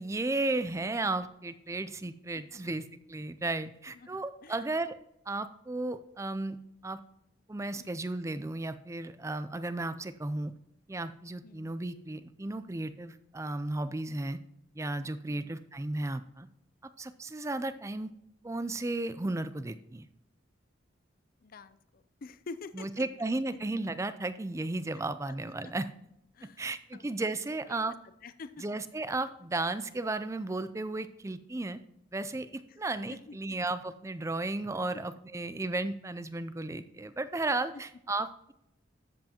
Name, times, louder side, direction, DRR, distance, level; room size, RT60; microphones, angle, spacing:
voice 1, 0.0-4.9 5.3-6.6 6.8-7.0 7.5-10.5 10.9-14.4 14.8-16.5 17.0-18.1 18.4-20.1 22.8-25.9 26.6-27.9 28.6-31.8 32.1-38.5, right 2 dB, 15° right, 12 dB, 0.4 m, -34 dB
voice 2, 2.0-2.8 3.9-4.7 7.8-7.9 11.4-11.8 15.3-15.6 21.4-23.0 25.3-25.4 25.6-25.7 26.3-27.1 27.7-27.8 28.0-28.6 32.7-32.8 33.1-33.6 34.9-35.0, left 4 dB, 45° left, 13 dB, 0.5 m, -48 dB
13.0 x 7.7 x 2.9 m, 0.78 s
head